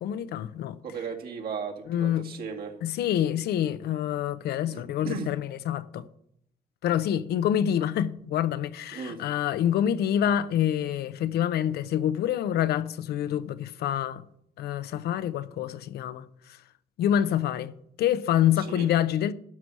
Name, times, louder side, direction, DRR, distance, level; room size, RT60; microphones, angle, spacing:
voice 1, 0.0-0.8 1.9-2.2 2.8-6.0 6.8-14.2 14.6-16.2 17.0-17.7 18.0-19.3, left 10 dB, 85° left, 0.7 m, -26 dB
voice 2, 0.8-2.7 4.7-5.3 8.9-9.2 18.6-18.9, right 5 dB, 70° right, 2.1 m, -36 dB
12.0 x 4.7 x 7.4 m
cardioid pair, 110°, 16 cm